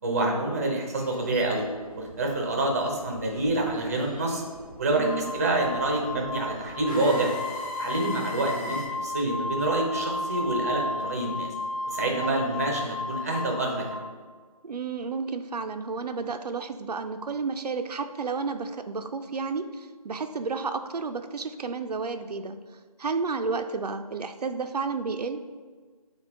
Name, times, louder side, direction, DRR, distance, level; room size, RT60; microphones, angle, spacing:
voice 1, 0.0-1.7 2.0-4.4 4.8-7.3 7.8-11.5 11.9-14.0, right 2 dB, 25° right, 1 dB, 0.6 m, -27 dB
sound 1, 0.9-8.9, equal, 15° left, 0.8 m, -42 dB
voice 2, 4.9-5.3 12.1-12.4 14.6-22.6 23.0-25.4, right 4 dB, 85° right, 7 dB, 0.4 m, -31 dB
Wind instrument woodwind instrument, 5.0-14.0, left 2 dB, 55° left, 0.9 m, -34 dB
6.7 x 2.3 x 3.3 m, 1.5 s
figure-of-eight pair, 160°, 20 cm